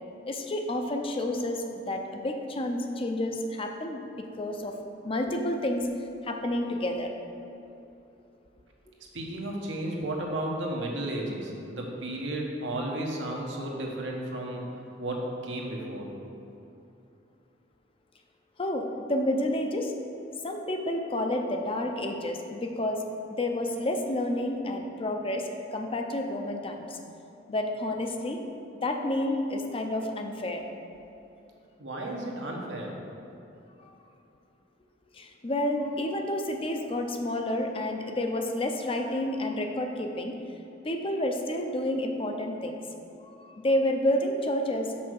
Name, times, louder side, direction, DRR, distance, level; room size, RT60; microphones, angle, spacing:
voice 1, 0.3-4.0 4.4-4.8 5.0-5.9 6.2-7.1 18.6-19.9 20.4-23.0 23.3-27.0 27.5-28.4 28.8-30.6 33.8-34.0 35.1-40.3 40.8-42.7 43.2-44.9, left 1 dB, 30° left, 3 dB, 0.5 m, -30 dB
voice 2, 9.1-14.6 15.0-16.1 31.8-32.9, right 1 dB, 85° right, -1 dB, 1.2 m, -33 dB
5.9 x 4.6 x 6.4 m, 2.8 s
head